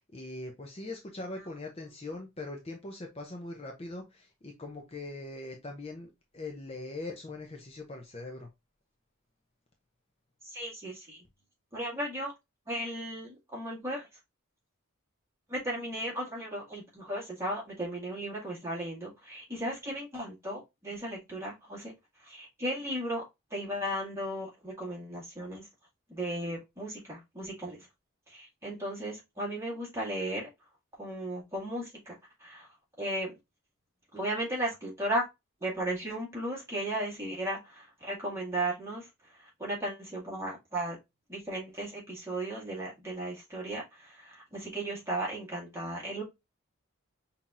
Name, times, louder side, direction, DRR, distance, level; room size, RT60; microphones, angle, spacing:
voice 1, 0.0-8.5, left 2 dB, 30° left, 0.6 m, -41 dB
voice 2, 10.4-11.2 11.7-12.3 12.7-14.1 15.5-21.9 22.2-23.2 23.5-25.7 26.1-27.8 28.3-30.5 31.0-32.7 33.0-33.3 34.1-35.2 35.6-39.1 39.4-41.0 41.3-46.2, right 1 dB, 15° right, 1.9 m, -35 dB
5.6 x 2.8 x 2.4 m
head